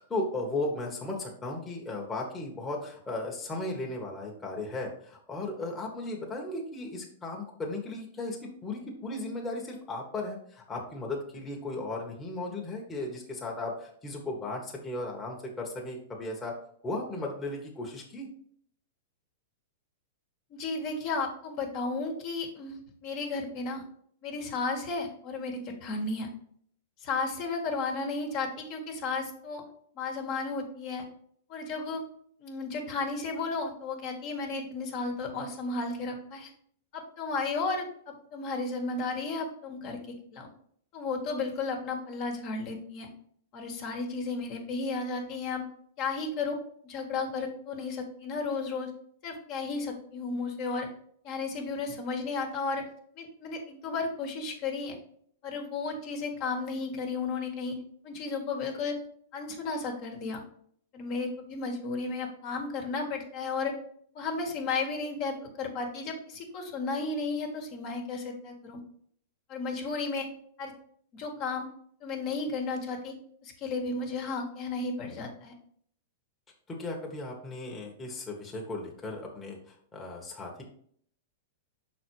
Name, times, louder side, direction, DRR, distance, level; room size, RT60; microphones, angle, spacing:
voice 1, 0.0-16.5 16.8-18.3 76.7-80.6, left 2 dB, 15° left, -2 dB, 1.4 m, -36 dB
voice 2, 20.5-23.8 24.2-26.3 27.0-29.6 29.9-31.0 31.5-32.0 32.4-36.5 36.9-40.5 40.9-43.1 43.5-45.6 46.0-46.6 46.8-48.9 49.2-50.9 51.2-52.8 53.1-55.0 55.4-57.7 58.0-59.0 59.3-60.4 60.9-63.7 64.1-68.8 69.5-70.3 70.6-70.7 71.1-71.7 72.0-73.1 73.4-75.5, left 3 dB, 45° left, 2 dB, 1.5 m, -33 dB
5.8 x 4.2 x 4.7 m, 0.62 s
hypercardioid pair, 120°, 0 cm